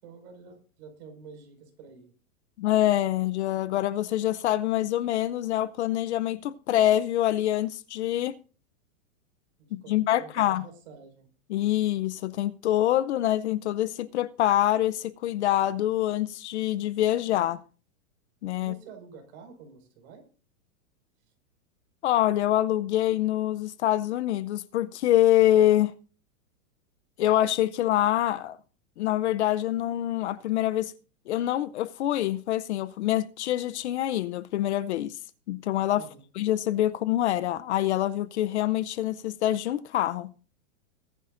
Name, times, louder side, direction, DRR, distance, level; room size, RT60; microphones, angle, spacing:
voice 1, 0.0-2.1 9.6-11.3 18.6-20.2 35.9-36.2, right 5 dB, 45° right, 5.2 m, -48 dB
voice 2, 2.6-8.4 9.7-10.6 11.5-17.6 18.4-18.7 22.0-25.9 27.2-28.6 29.0-30.9 31.3-35.2 35.5-36.0 36.4-40.3, left 13 dB, 50° left, 0.7 m, -25 dB
21.5 x 10.0 x 2.5 m
supercardioid pair, 160°, 43 cm